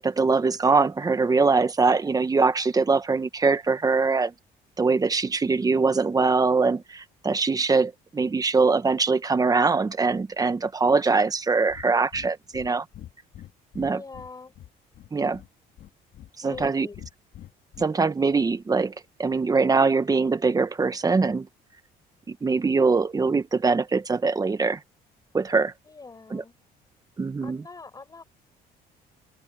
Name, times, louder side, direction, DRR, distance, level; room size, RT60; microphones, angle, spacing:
voice 1, 0.0-4.3 4.8-12.8 13.7-14.0 15.1-15.4 16.4-16.9 17.8-18.9 19.2-21.5 22.3-24.8 25.3-25.7 26.3-26.4 27.2-27.6, right 4 dB, 20° right, 1.4 m, -22 dB
Breathing, 11.7-11.9 12.1-12.3 12.5-12.7 12.9-14.3 14.5-15.5 15.8-16.7 16.9-17.8, left 12 dB, 65° left, 3.1 m, -44 dB
voice 2, 13.9-14.5 16.4-17.0 25.9-26.5 27.4-28.2, left 4 dB, 20° left, 6.8 m, -43 dB
cardioid pair, 110°, 17 cm